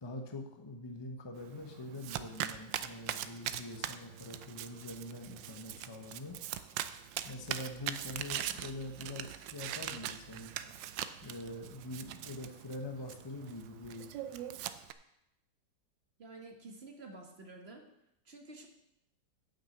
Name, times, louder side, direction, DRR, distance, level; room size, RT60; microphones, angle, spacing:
voice 1, 0.0-6.4 7.2-10.5 11.2-14.1, left 1 dB, 20° left, 3 dB, 0.9 m, -44 dB
Domestic sounds home sounds, 1.4-14.9, right 11 dB, 85° right, 1.3 m, -42 dB
voice 2, 16.2-17.9 18.2-18.7, right 2 dB, 40° right, 3 dB, 1.4 m, -50 dB
8.7 x 5.9 x 7.9 m, 0.84 s
omnidirectional pair, 1.9 m